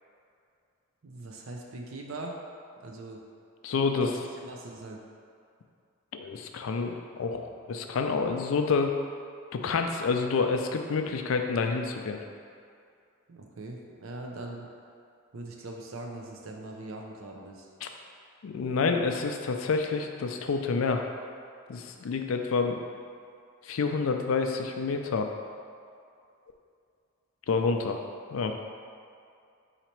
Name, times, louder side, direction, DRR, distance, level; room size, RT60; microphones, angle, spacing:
voice 1, 1.0-2.4 2.8-3.2 4.0-5.0 13.3-14.7 15.3-17.7, right 2 dB, 80° right, 1 dB, 0.6 m, -41 dB
voice 2, 3.6-4.1 6.1-9.0 9.5-12.2 17.8-17.9 18.4-21.0 21.7-22.8 23.6-25.3 27.5-28.0 28.3-28.5, left 4 dB, 75° left, 5 dB, 0.4 m, -28 dB
4.0 x 2.9 x 4.5 m, 2.4 s
head